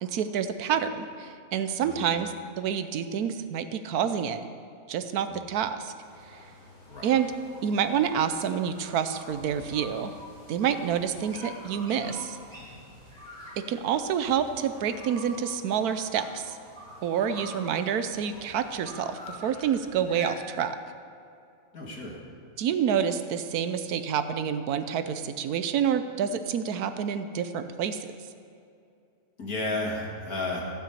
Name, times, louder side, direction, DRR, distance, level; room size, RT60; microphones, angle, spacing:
voice 1, 0.0-4.4 4.9-5.9 7.0-7.3 7.6-10.2 10.5-12.4 13.6-16.6 17.0-20.8 22.6-28.0, right 8 dB, 90° right, 10 dB, 1.2 m, -28 dB
sound 1, 6.0-20.4, left 1 dB, 5° left, 3.9 m, -47 dB
voice 2, 6.9-7.2 21.7-22.2 29.4-30.6, left 2 dB, 80° left, -1 dB, 2.5 m, -33 dB
15.0 x 6.1 x 8.3 m, 2.5 s
omnidirectional pair, 1.6 m